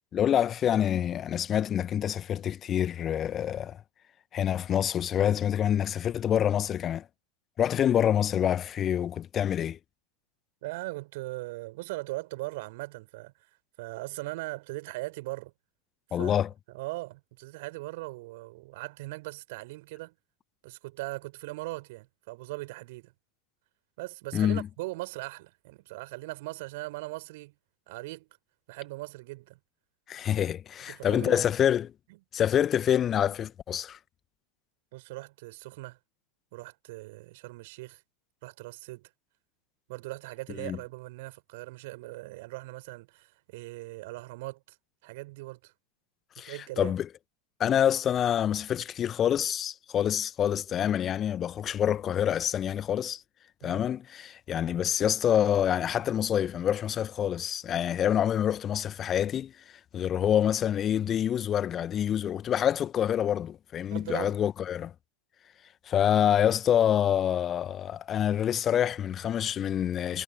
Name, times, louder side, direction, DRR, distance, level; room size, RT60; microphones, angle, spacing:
voice 1, 0.1-3.8 4.3-7.0 7.6-9.8 16.1-16.5 24.3-24.7 30.1-31.9 32.3-34.0 40.6-40.8 46.4-47.1 47.6-53.2 53.6-59.5 59.9-64.9 65.9-70.2, left 10 dB, 25° left, 1.4 m, -26 dB
voice 2, 10.6-13.5 13.8-15.5 16.1-16.4 16.7-20.1 20.6-23.1 24.0-27.5 27.9-28.3 28.7-29.6 30.9-31.5 34.9-36.0 36.5-38.0 38.4-39.1 39.9-44.8 45.0-45.7 46.5-46.9 53.6-53.9 63.9-64.4, right 21 dB, 50° right, 7.2 m, -39 dB
figure-of-eight pair, 90°, 0 cm